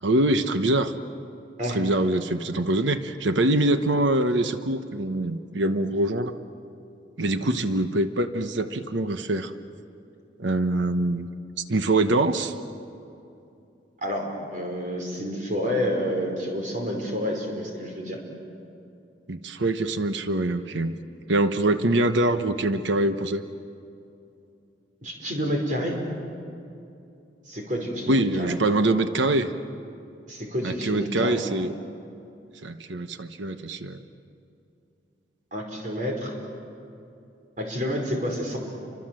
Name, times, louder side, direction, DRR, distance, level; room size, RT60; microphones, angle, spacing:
voice 1, 0.0-0.9 1.7-6.4 7.2-9.5 10.4-11.3 11.7-12.5 19.3-21.0 21.3-23.4 28.1-29.5 30.6-31.7 32.6-34.0, right 2 dB, 80° right, 9 dB, 1.1 m, -24 dB
voice 2, 14.0-18.2 25.0-26.0 27.4-28.5 30.3-31.4 35.5-36.3 37.6-38.6, equal, 45° right, 1 dB, 5.0 m, -29 dB
30.0 x 25.0 x 7.7 m, 2.7 s
head